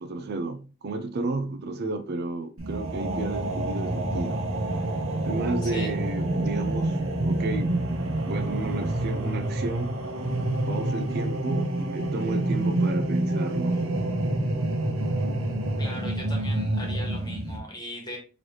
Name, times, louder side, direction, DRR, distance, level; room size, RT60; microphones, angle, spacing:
voice 1, 0.0-4.5 5.2-7.8 8.3-10.0 10.7-13.8, right 3 dB, 50° right, 0.4 m, -32 dB
sound 1, 2.6-17.6, right 1 dB, 75° right, 0.9 m, -27 dB
voice 2, 15.8-18.2, left 1 dB, 20° left, 1.3 m, -38 dB
3.9 x 3.2 x 3.0 m
head